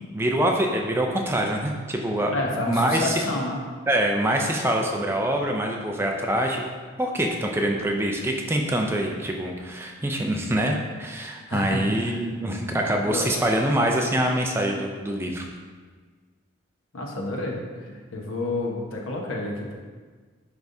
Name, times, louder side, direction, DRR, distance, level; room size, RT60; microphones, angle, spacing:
voice 1, 0.1-2.3 2.7-3.1 3.9-6.7 7.0-15.4, right 1 dB, 10° right, 1 dB, 0.4 m, -25 dB
voice 2, 2.3-3.6 11.5-12.2 13.0-13.3 16.9-19.7, left 2 dB, 85° left, -1 dB, 1.1 m, -30 dB
10.5 x 3.5 x 2.6 m, 1.5 s
head